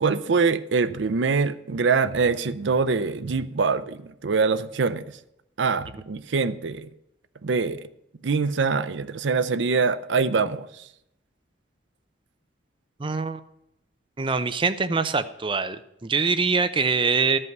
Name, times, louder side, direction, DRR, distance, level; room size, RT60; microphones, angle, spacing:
voice 1, 0.0-5.0 5.6-6.9 7.4-7.8 8.2-10.8, right 4 dB, 75° right, 0.5 m, -24 dB
voice 2, 13.0-13.4 14.2-17.4, right 4 dB, 25° right, 0.5 m, -24 dB
12.0 x 5.5 x 7.8 m
head